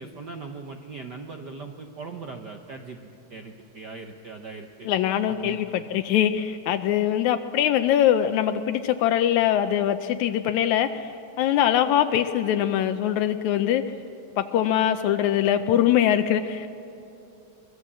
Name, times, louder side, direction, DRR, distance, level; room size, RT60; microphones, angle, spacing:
voice 1, 0.0-3.0 3.3-4.9 5.3-5.8, right 4 dB, 65° right, 4 dB, 1.0 m, -40 dB
voice 2, 4.9-11.1 11.4-13.8 14.4-16.7, left 10 dB, 80° left, 8 dB, 2.0 m, -22 dB
24.0 x 21.5 x 7.6 m, 2.9 s
omnidirectional pair, 3.3 m